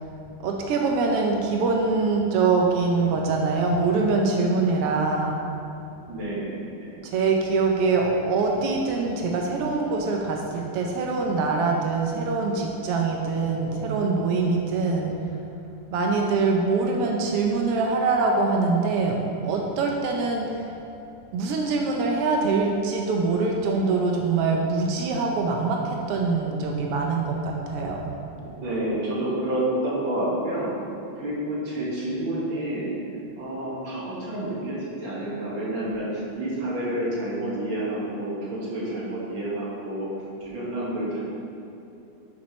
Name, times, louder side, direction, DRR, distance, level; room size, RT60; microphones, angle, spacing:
voice 1, 0.4-5.4 7.0-15.1 15.9-19.2 19.4-20.7 21.3-28.1, right 4 dB, 85° right, 0 dB, 1.3 m, -24 dB
voice 2, 6.1-6.6 6.8-7.0 28.3-30.7 31.1-32.9 33.4-40.1 40.4-41.2, right 1 dB, 45° right, -7 dB, 2.4 m, -29 dB
8.9 x 8.3 x 3.2 m, 2.8 s
omnidirectional pair, 3.5 m